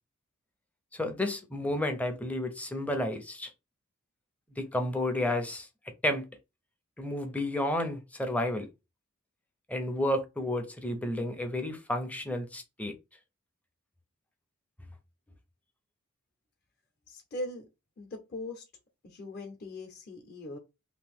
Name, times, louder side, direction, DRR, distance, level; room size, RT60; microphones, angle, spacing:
voice 1, 0.9-3.5 4.6-5.7 6.0-6.3 7.0-8.7 9.7-12.9, left 1 dB, 5° left, 0.5 m, -31 dB
voice 2, 17.1-17.6 18.0-18.6 19.0-20.6, left 1 dB, 45° left, 0.8 m, -40 dB
2.9 x 2.6 x 3.4 m
head